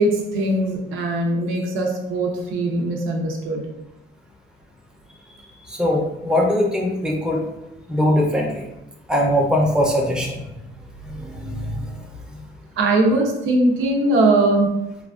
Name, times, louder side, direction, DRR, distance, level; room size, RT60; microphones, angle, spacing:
voice 1, 0.0-3.6 12.8-14.7, right 2 dB, 85° right, 0 dB, 0.6 m, -20 dB
voice 2, 5.7-7.4 7.9-8.6 9.1-10.4 11.2-12.0, left 1 dB, 5° right, -1 dB, 0.6 m, -21 dB
3.1 x 2.2 x 2.4 m, 0.90 s
cardioid pair, 90°, 20 cm